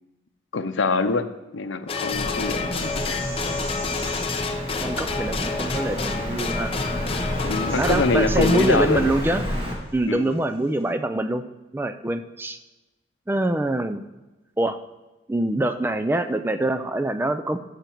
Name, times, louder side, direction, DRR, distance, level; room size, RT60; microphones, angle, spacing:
voice 1, 0.5-3.2 7.4-9.1 10.1-10.3, left 3 dB, 90° left, 10 dB, 0.7 m, -24 dB
sound 1, 1.9-9.4 10.3-10.4, left 4 dB, 30° left, 0.6 m, -30 dB
Bird vocalization bird call bird song, 2.1-9.7, equal, 30° right, 1.7 m, -29 dB
voice 2, 4.8-6.7 7.8-9.4 9.9-11.4 11.7-12.6 13.3-14.0 14.6-14.8 15.3-17.6, right 1 dB, 10° right, 9 dB, 0.3 m, -24 dB
12.0 x 6.5 x 4.5 m, 1.1 s
head